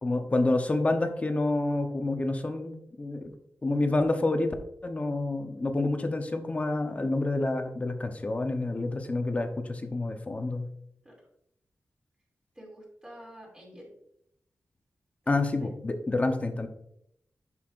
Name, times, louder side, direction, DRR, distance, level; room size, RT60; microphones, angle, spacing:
voice 1, 0.0-3.3 3.6-4.5 4.8-10.7 15.3-16.7, left 2 dB, 25° left, 6 dB, 0.8 m, -28 dB
voice 2, 12.5-13.9 15.2-15.7, equal, 20° right, -4 dB, 2.6 m, -49 dB
10.5 x 5.7 x 2.5 m, 0.77 s
wide cardioid pair, 140°, 5 cm